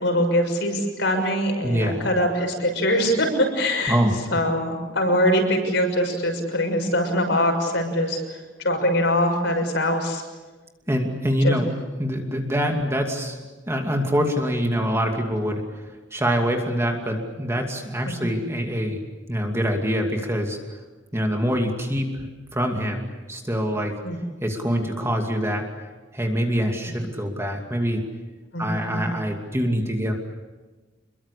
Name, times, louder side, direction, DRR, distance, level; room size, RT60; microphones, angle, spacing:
voice 1, 0.0-3.3 3.5-4.0 4.3-10.2 11.4-11.6 18.0-18.2 24.0-24.2 26.9-27.0 28.5-29.2, equal, 60° left, 4 dB, 6.5 m, -23 dB
voice 2, 1.6-2.1 3.9-4.2 10.9-11.7 12.0-13.4 13.7-15.6 16.1-19.0 19.3-20.6 21.1-22.1 22.5-23.9 24.4-25.7 26.1-28.0 28.6-30.1, equal, 15° right, 2 dB, 2.6 m, -24 dB
28.0 x 22.5 x 8.5 m, 1.2 s
head